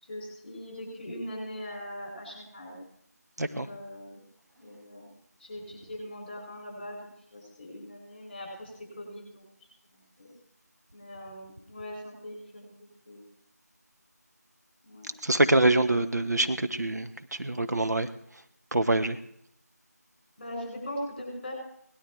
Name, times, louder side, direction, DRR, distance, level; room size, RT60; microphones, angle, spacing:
voice 1, 0.0-2.8 3.6-4.2 4.5-5.1 5.4-9.5 9.9-10.3 10.9-12.7 13.1-13.2 14.8-15.1 20.4-21.5, equal, 30° left, 0 dB, 7.4 m, -41 dB
voice 2, 3.4-3.7 15.2-18.1 18.7-19.2, right 2 dB, 75° right, 9 dB, 1.3 m, -25 dB
19.5 x 12.0 x 4.8 m, 0.70 s
figure-of-eight pair, 175°, 9 cm